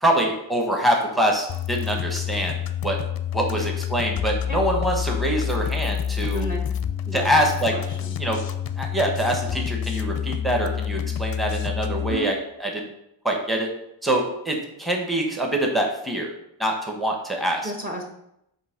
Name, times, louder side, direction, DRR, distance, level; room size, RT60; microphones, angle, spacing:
voice 1, 0.0-2.5 2.8-3.0 3.3-6.4 7.1-7.7 8.2-8.4 8.8-12.9 13.2-13.7 14.0-16.3 16.6-17.7, right 1 dB, ahead, 1 dB, 1.2 m, -24 dB
sound 1, 1.5-12.2, left 8 dB, 50° left, 0.5 m, -28 dB
voice 2, 6.2-6.7 7.1-8.1 12.0-12.3 17.6-18.0, right 1 dB, 20° right, 2 dB, 1.1 m, -33 dB
7.8 x 2.9 x 5.1 m, 0.78 s
cardioid pair, 70°, 47 cm